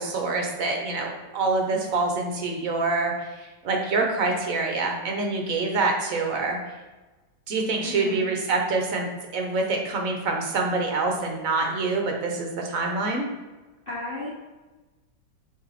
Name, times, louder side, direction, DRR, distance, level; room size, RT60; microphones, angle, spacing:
voice 1, 0.0-6.6 7.5-13.3, right 3 dB, 55° right, 2 dB, 1.0 m, -26 dB
voice 2, 7.8-8.3 13.9-14.3, left 2 dB, 45° left, -6 dB, 0.7 m, -33 dB
7.0 x 3.3 x 4.1 m, 1.2 s
omnidirectional pair, 2.2 m